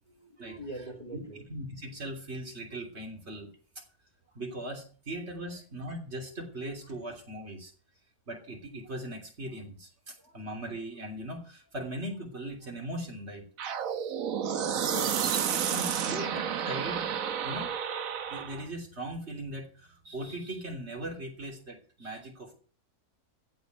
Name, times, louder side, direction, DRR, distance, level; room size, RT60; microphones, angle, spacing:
voice 1, 0.1-1.4 14.4-15.4 16.1-16.4, equal, 30° left, 2.0 m, -43 dB
voice 2, 1.1-3.5 4.3-7.7 8.3-13.4 14.7-14.8 15.7-17.2 17.4-17.7 18.3-22.6, right 1 dB, 45° right, 3.5 m, -39 dB
sound 1, 13.6-18.6, right 8 dB, 65° right, 1.3 m, -31 dB
15.0 x 5.2 x 9.3 m
omnidirectional pair, 1.6 m